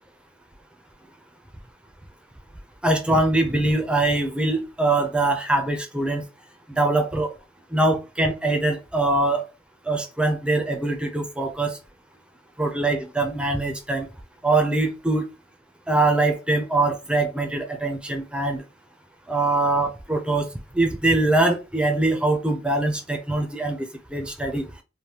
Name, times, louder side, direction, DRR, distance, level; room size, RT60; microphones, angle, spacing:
voice 1, 2.8-6.2 6.8-7.3 7.7-9.4 9.9-11.8 12.6-14.1 14.4-15.3 15.9-18.6 19.3-20.5 20.7-24.6, right 2 dB, 5° right, 0.4 m, -23 dB
3.2 x 2.1 x 2.8 m
head